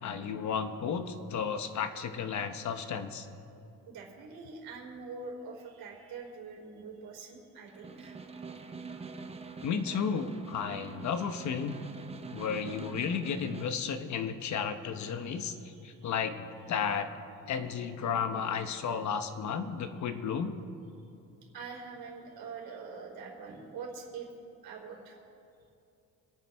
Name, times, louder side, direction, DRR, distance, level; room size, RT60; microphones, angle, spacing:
voice 1, 0.0-3.3 9.6-11.8 12.3-17.1 17.5-20.5, left 6 dB, 50° left, 8 dB, 1.1 m, -33 dB
voice 2, 3.9-8.1 15.3-16.1 21.5-24.3 24.6-25.2, right 4 dB, 75° right, -1 dB, 3.7 m, -44 dB
Snare drum, 7.7-13.8, right 4 dB, 15° right, 0.8 m, -45 dB
27.0 x 9.2 x 3.5 m, 2.7 s
cardioid pair, 135°, 36 cm